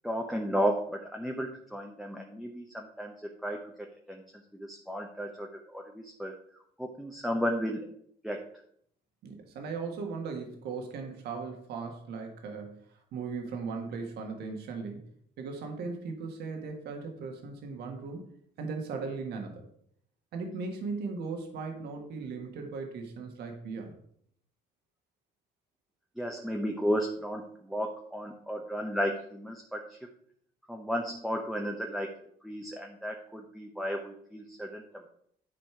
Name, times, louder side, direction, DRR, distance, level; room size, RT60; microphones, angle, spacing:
voice 1, 0.0-3.1 3.4-3.7 4.1-4.2 4.5-6.3 6.8-7.9 8.2-8.5 26.2-30.0 30.7-32.1 32.4-35.1, equal, ahead, 1 dB, 0.9 m, -33 dB
voice 2, 9.2-15.0 15.4-18.2 18.6-19.7 20.3-24.0, right 4 dB, 75° right, 3 dB, 1.7 m, -38 dB
10.5 x 4.3 x 4.6 m, 0.67 s
cardioid pair, 110°, 17 cm